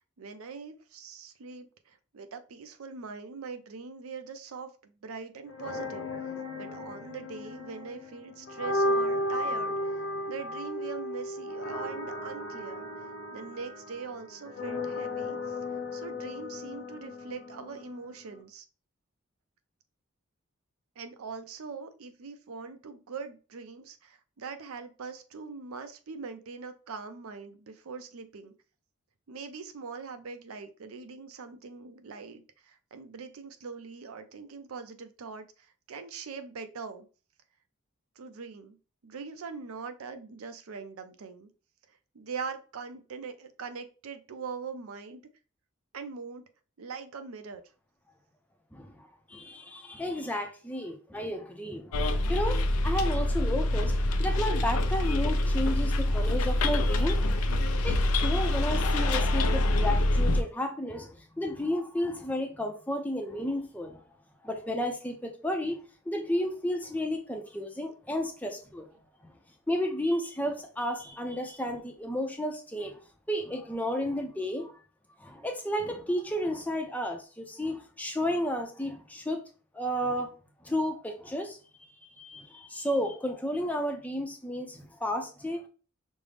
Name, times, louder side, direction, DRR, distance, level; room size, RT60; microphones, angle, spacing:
voice 1, 0.2-6.1 6.5-12.9 13.3-15.6 15.9-18.7 21.0-28.5 29.3-37.1 38.2-38.8 39.0-41.5 41.9-45.2 45.9-46.4 46.8-47.6, right 5 dB, 85° right, 0.5 m, -42 dB
sound 1, 5.5-18.4, left 1 dB, 50° left, 0.7 m, -35 dB
voice 2, 48.7-57.4 57.8-64.0 64.4-65.8 66.1-68.9 69.7-73.0 73.3-74.7 75.2-79.4 79.7-80.3 80.6-81.6 82.2-85.6, equal, 5° left, 0.4 m, -32 dB
Bus, 51.9-60.4, left 1 dB, 90° left, 0.5 m, -25 dB
5.2 x 2.0 x 3.2 m
head